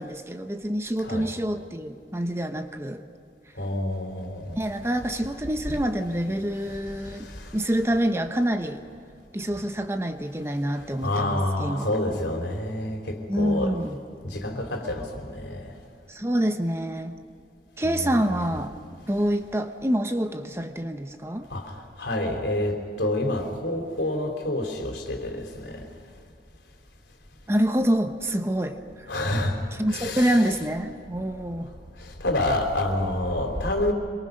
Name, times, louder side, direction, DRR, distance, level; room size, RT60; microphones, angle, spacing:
voice 1, 0.0-3.0 4.6-8.8 9.3-11.9 13.3-14.0 16.1-17.2 17.8-18.7 19.1-21.5 27.5-28.8 29.7-31.7, right 1 dB, 15° right, 7 dB, 0.9 m, -26 dB
voice 2, 3.6-4.6 6.7-7.5 11.0-13.7 14.2-15.7 17.8-18.4 21.5-25.8 29.1-29.6 29.9-30.4 32.0-33.9, left 1 dB, 85° left, 3 dB, 3.7 m, -28 dB
26.5 x 23.0 x 5.4 m, 2.4 s
head